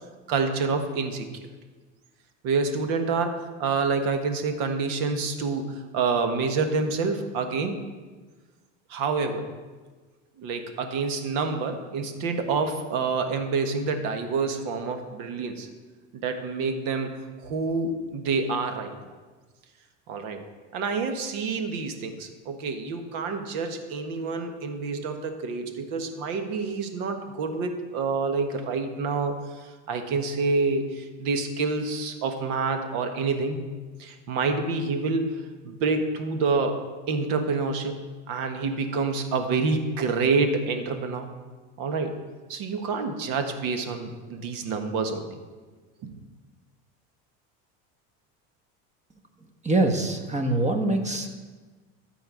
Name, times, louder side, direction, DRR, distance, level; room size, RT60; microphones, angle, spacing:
voice 1, 0.3-1.3 2.4-7.8 8.9-9.5 10.4-15.7 16.1-17.1 17.4-18.9 20.1-20.4 20.7-33.6 34.0-38.0 38.3-41.3 41.8-42.2 42.5-45.4 46.0-46.1, right 4 dB, 70° right, 6 dB, 1.5 m, -27 dB
voice 2, 49.6-51.4, right 2 dB, 20° right, 6 dB, 1.3 m, -24 dB
12.5 x 4.7 x 8.5 m, 1.3 s
supercardioid pair, 115°, 36 cm